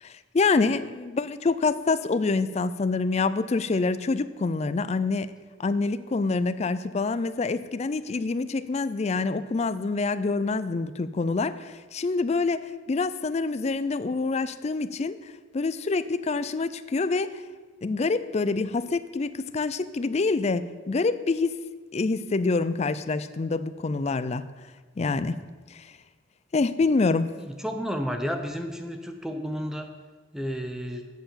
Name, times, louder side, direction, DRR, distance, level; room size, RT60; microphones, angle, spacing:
voice 1, 0.0-5.3 5.6-17.4 17.8-21.6 21.9-24.5 25.0-25.4 25.7-25.9 26.5-27.3, left 3 dB, 35° left, 14 dB, 0.4 m, -26 dB
voice 2, 27.4-29.9 30.3-31.1, equal, 5° right, 5 dB, 0.6 m, -32 dB
8.0 x 6.8 x 7.1 m, 1.4 s
head